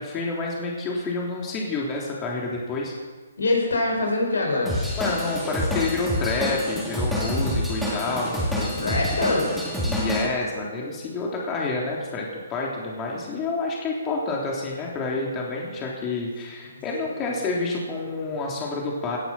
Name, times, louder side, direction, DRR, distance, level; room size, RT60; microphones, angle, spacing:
voice 1, 0.0-2.9 5.0-8.9 9.8-19.2, left 3 dB, 20° left, -2 dB, 3.5 m, -28 dB
voice 2, 3.4-4.8 8.8-9.6 16.6-16.7 17.0-17.2, left 2 dB, 75° left, 0 dB, 5.9 m, -24 dB
Drum kit / Drum, 4.7-10.3, left 1 dB, 5° left, 4.3 m, -27 dB
19.0 x 11.0 x 6.1 m, 1.4 s
figure-of-eight pair, 135°, 0 cm